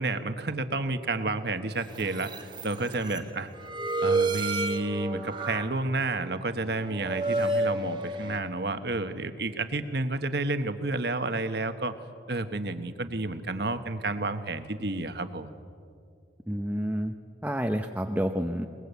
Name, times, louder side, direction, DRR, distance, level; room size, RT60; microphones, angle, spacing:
voice 1, 0.0-2.3 2.6-3.5 4.0-11.9 12.3-15.5, right 2 dB, 60° right, 9 dB, 1.2 m, -30 dB
sound 1, 1.9-3.2 3.6-5.6 6.2-6.5 6.8-8.4, right 2 dB, 25° right, 1.5 m, -30 dB
voice 2, 16.5-17.1 17.4-18.7, equal, 10° right, 4 dB, 0.7 m, -29 dB
22.0 x 20.5 x 8.2 m, 2.3 s
head